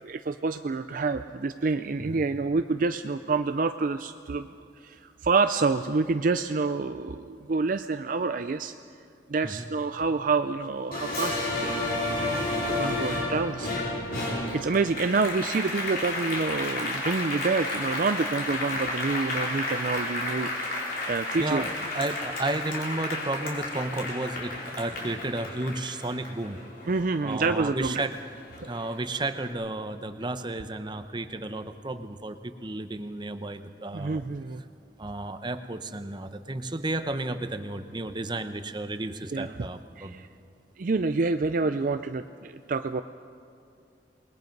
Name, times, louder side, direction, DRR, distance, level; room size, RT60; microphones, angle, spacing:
voice 1, 0.0-4.5 4.8-8.7 9.3-12.2 12.7-13.7 14.5-21.6 26.9-28.0 33.9-34.6 39.3-39.5 40.0-40.3 40.8-43.0, right 4 dB, 50° right, 9 dB, 0.5 m, -28 dB
Applause, 10.9-27.7 28.1-29.3, left 2 dB, 55° left, 4.2 m, -32 dB
voice 2, 21.4-26.6 27.2-28.2 28.6-34.2 35.0-40.2, right 2 dB, 25° right, 9 dB, 0.9 m, -33 dB
28.0 x 20.5 x 5.3 m, 2.4 s
head